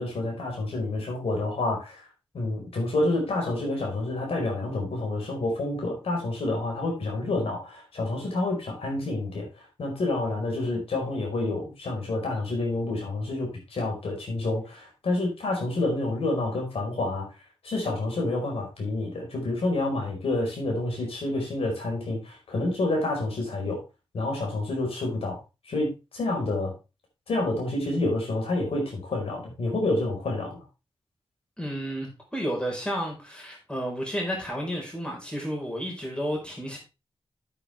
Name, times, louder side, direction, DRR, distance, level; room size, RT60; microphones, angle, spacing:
voice 1, 0.0-2.0 2.3-9.5 9.8-17.3 17.6-23.8 24.1-25.4 25.7-26.7 27.3-30.6, left 2 dB, 85° left, 0 dB, 4.9 m, -28 dB
voice 2, 31.6-36.8, equal, 10° left, -1 dB, 4.7 m, -31 dB
9.0 x 8.7 x 3.5 m, 0.28 s
wide cardioid pair, 80°, 10 cm